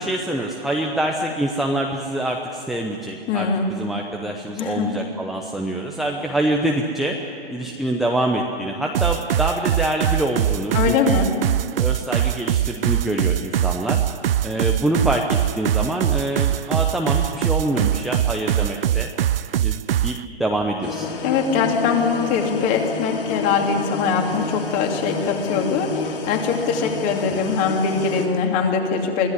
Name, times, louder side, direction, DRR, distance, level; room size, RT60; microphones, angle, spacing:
voice 1, 0.0-7.2 7.5-11.2 11.7-14.0 14.4-19.1 19.6-21.1 27.5-27.6, right 1 dB, ahead, 0 dB, 0.8 m, -25 dB
voice 2, 3.3-3.7 4.6-5.0 10.7-11.3 21.2-29.3, left 5 dB, 25° left, 3 dB, 2.7 m, -22 dB
sound 1, 8.9-20.2, right 11 dB, 65° right, 0.5 m, -22 dB
sound 2, 20.8-28.3, left 4 dB, 60° left, 3.2 m, -29 dB
23.5 x 15.5 x 9.6 m, 2.7 s
hypercardioid pair, 140°, 31 cm